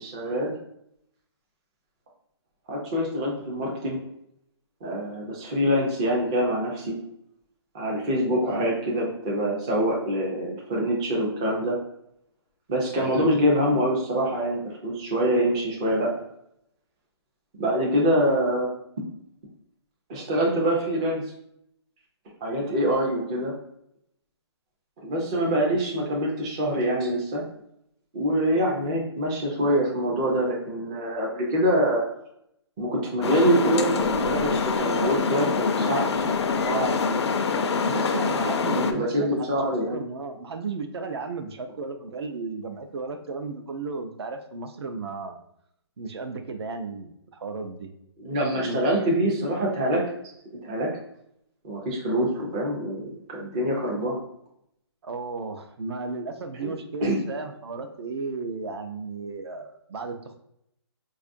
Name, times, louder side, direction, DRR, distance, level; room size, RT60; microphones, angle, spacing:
voice 1, 0.0-0.5 2.7-4.0 4.8-7.0 7.7-11.8 12.7-16.1 17.6-18.7 20.1-21.2 22.4-23.5 25.0-27.4 28.1-32.0 32.8-36.4 36.6-36.9 38.9-40.0 48.2-50.0 50.6-50.9 51.6-54.2 56.6-56.7 57.0-57.2, equal, 15° right, -2 dB, 0.3 m, -25 dB
voice 2, 12.9-13.3 37.9-45.4 46.0-47.9 48.6-49.3 55.0-60.3, right 4 dB, 65° right, 7 dB, 0.5 m, -34 dB
sound 1, 33.2-38.9, left 5 dB, 70° left, 0.4 m, -25 dB
4.5 x 2.4 x 2.5 m, 0.73 s
hypercardioid pair, 165°, 15 cm